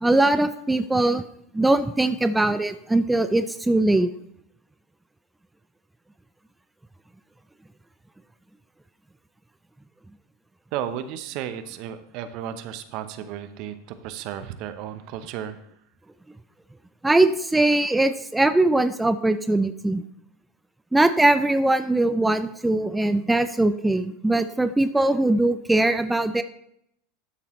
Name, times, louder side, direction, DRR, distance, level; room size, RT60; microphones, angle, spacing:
voice 1, 0.0-1.2 1.5-4.1 17.0-20.0 20.9-26.4, right 2 dB, 10° right, 11 dB, 0.5 m, -21 dB
voice 2, 10.7-15.6, right 10 dB, 55° right, 11 dB, 0.8 m, -34 dB
12.5 x 6.8 x 3.1 m, 0.74 s
hypercardioid pair, 85°, 0 cm